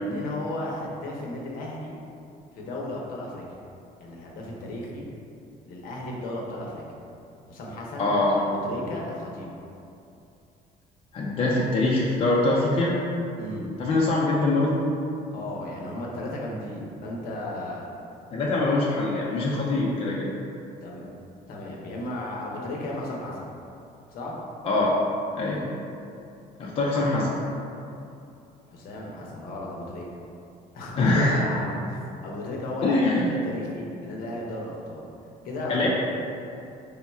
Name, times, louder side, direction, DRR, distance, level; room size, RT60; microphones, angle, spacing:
voice 1, 0.0-2.0 2.5-3.4 4.0-5.1 5.7-6.8 7.5-9.5 13.4-13.7 15.3-17.9 20.8-21.0 21.5-23.5 24.1-24.4 26.8-27.0 28.7-30.1 30.7-35.1 35.4-35.9, left 1 dB, 65° left, -3 dB, 0.8 m, -35 dB
voice 2, 8.0-8.4 11.1-13.0 13.8-14.8 18.3-20.3 24.6-25.0 25.3-25.7 26.6-27.4 31.0-31.4 32.8-33.3 35.7-35.9, left 2 dB, 35° left, -5 dB, 0.5 m, -23 dB
3.5 x 2.3 x 4.2 m, 2.6 s
cardioid pair, 140°, 16 cm